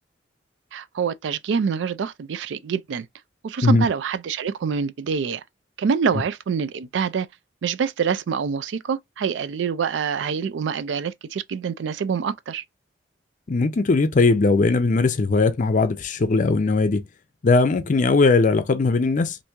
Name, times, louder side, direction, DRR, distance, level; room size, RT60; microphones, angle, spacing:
voice 1, 0.7-3.1 3.4-5.4 5.8-7.3 7.6-12.6, right 6 dB, 80° right, 0.4 m, -26 dB
voice 2, 13.5-17.0 17.4-19.4, left 3 dB, 45° left, 0.5 m, -19 dB
2.9 x 2.6 x 3.3 m
head